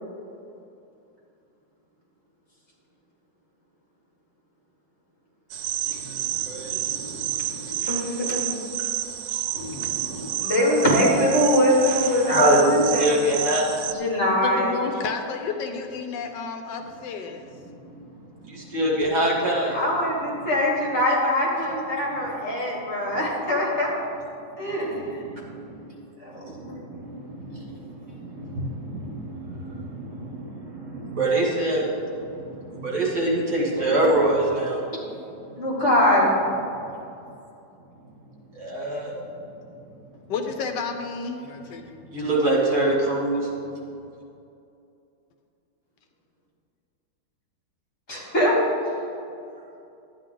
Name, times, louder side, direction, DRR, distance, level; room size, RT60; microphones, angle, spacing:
sound 1, 5.5-13.9, right 12 dB, 85° right, 1.4 m, -30 dB
voice 1, 5.9-7.8 9.5-10.3 12.3-13.7 18.4-19.8 24.6-25.9 26.4-32.0 32.3-34.8 38.5-39.1 42.1-43.5, right 1 dB, 65° right, -4 dB, 2.8 m, -25 dB
voice 2, 7.8-8.5 8.8-8.9 10.4-12.6 12.9-13.1 13.9-14.7 19.7-24.0 24.6-25.2 26.2-27.0 33.8-34.0 35.6-36.4 48.1-48.6, left 1 dB, 40° left, -5 dB, 2.8 m, -23 dB
voice 3, 14.4-17.5 40.3-42.0, left 5 dB, 75° left, 5 dB, 1.4 m, -31 dB
12.5 x 9.7 x 3.8 m, 2.6 s
omnidirectional pair, 1.9 m